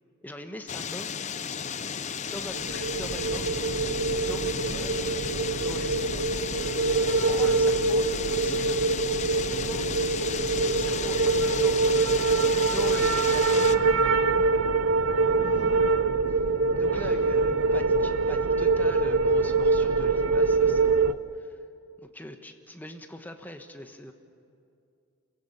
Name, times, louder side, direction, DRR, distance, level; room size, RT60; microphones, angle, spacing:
voice 1, 0.2-1.1 2.3-3.6 4.2-6.2 6.9-8.8 9.5-10.4 10.6-11.9 12.6-13.8 16.3-16.5 16.7-21.6 22.0-24.1, left 1 dB, 10° left, 5 dB, 1.2 m, -43 dB
sound 1, 0.7-13.8, left 7 dB, 35° left, 0.6 m, -34 dB
sound 2, 2.5-21.1, right 3 dB, 75° right, 0.7 m, -24 dB
voice 2, 13.4-14.4 15.2-15.8 16.9-17.9, right 1 dB, 10° right, -3 dB, 6.7 m, -41 dB
28.0 x 16.0 x 8.7 m, 2.5 s
head